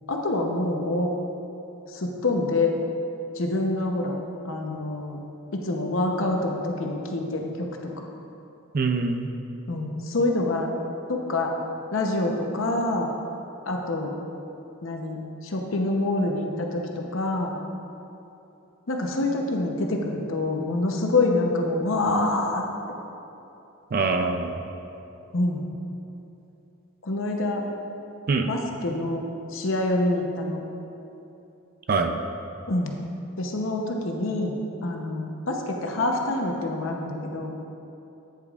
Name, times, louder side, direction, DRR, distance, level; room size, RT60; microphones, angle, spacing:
voice 1, 0.1-1.1 1.9-2.7 3.4-4.2 4.4-5.2 5.5-7.7 8.0-8.1 9.7-10.7 11.1-11.5 11.9-13.1 13.7-14.1 14.8-17.5 18.9-22.6 25.3-25.6 27.0-27.7 28.5-29.2 29.5-30.6 32.7-32.9 33.4-34.5 34.8-37.5, left 2 dB, 70° left, 1 dB, 0.8 m, -26 dB
voice 2, 8.7-9.3 23.9-24.6 28.3-28.5 31.9-32.1, right 4 dB, 45° right, 5 dB, 0.4 m, -24 dB
9.2 x 8.2 x 2.4 m, 2.9 s
head